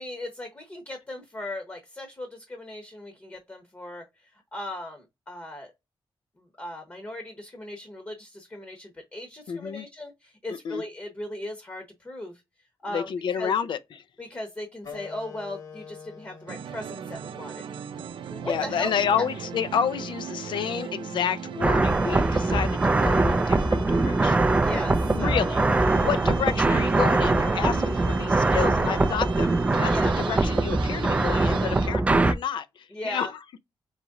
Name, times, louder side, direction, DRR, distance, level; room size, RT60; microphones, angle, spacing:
voice 1, 0.0-4.0 4.5-5.7 6.6-12.3 12.8-13.5 14.2-17.6 18.3-19.2 24.6-25.6 29.9-30.1 32.9-33.3, left 1 dB, 20° left, 0.9 m, -37 dB
voice 2, 9.5-9.9 10.5-10.8 12.9-14.0 18.5-24.5 25.1-25.6 26.0-33.6, left 8 dB, 70° left, 0.5 m, -30 dB
sound 1, 14.8-20.0, left 5 dB, 50° left, 1.3 m, -47 dB
sound 2, 16.5-31.9, right 7 dB, 75° right, 0.5 m, -37 dB
sound 3, 21.6-32.3, right 2 dB, 15° right, 0.3 m, -22 dB
4.0 x 3.0 x 3.6 m
wide cardioid pair, 165°, 9 cm